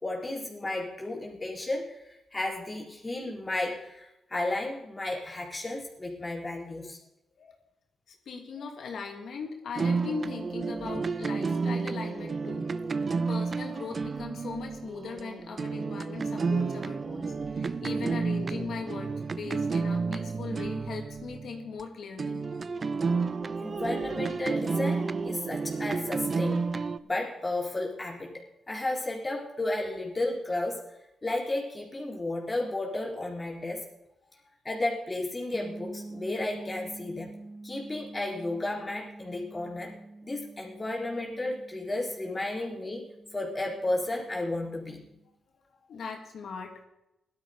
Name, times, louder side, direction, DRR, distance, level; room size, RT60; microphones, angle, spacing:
voice 1, 0.0-7.0 23.6-26.7 27.0-30.8 31.2-33.8 34.6-37.3 37.6-39.9 40.2-43.0 43.3-45.0, left 2 dB, 25° left, -2 dB, 4.1 m, -33 dB
voice 2, 8.1-12.7 13.0-22.5 23.1-23.2 42.6-42.7 45.9-46.8, left 5 dB, 70° left, 2 dB, 3.0 m, -39 dB
sound 1, 9.7-21.8 22.2-27.0, right 4 dB, 45° right, 0.7 m, -31 dB
sound 2, 35.5-45.2, right 2 dB, 25° right, 3.8 m, -47 dB
15.5 x 12.5 x 5.2 m, 0.90 s
cardioid pair, 60°, 0 cm